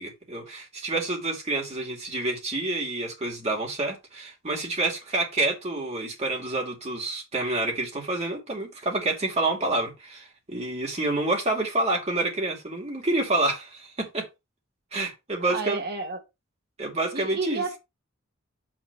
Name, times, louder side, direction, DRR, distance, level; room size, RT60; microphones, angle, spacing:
voice 1, 0.0-14.3 14.9-15.8 16.8-17.6, right 2 dB, 35° right, 2.7 m, -28 dB
voice 2, 15.5-16.2 17.1-17.8, right 4 dB, 55° right, 1.7 m, -31 dB
6.2 x 3.7 x 6.1 m
head